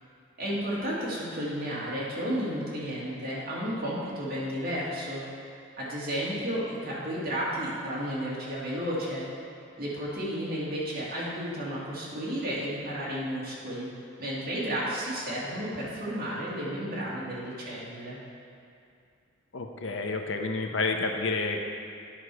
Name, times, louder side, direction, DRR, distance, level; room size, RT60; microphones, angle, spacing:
voice 1, 0.4-5.2 5.8-9.3 9.8-13.9 14.2-18.2, equal, 45° right, -7 dB, 2.2 m, -32 dB
voice 2, 19.5-21.6, left 3 dB, 70° left, 3 dB, 0.7 m, -29 dB
10.0 x 5.6 x 4.8 m, 2.5 s
head